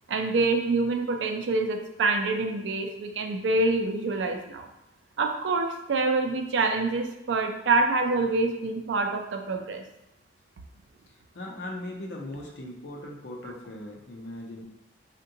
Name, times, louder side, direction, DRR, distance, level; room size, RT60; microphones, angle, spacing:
voice 1, 0.1-4.7 5.2-9.8, right 3 dB, 85° right, 4 dB, 0.4 m, -26 dB
voice 2, 11.3-14.6, left 1 dB, 75° left, 0 dB, 0.6 m, -39 dB
3.6 x 2.2 x 2.7 m, 0.88 s
head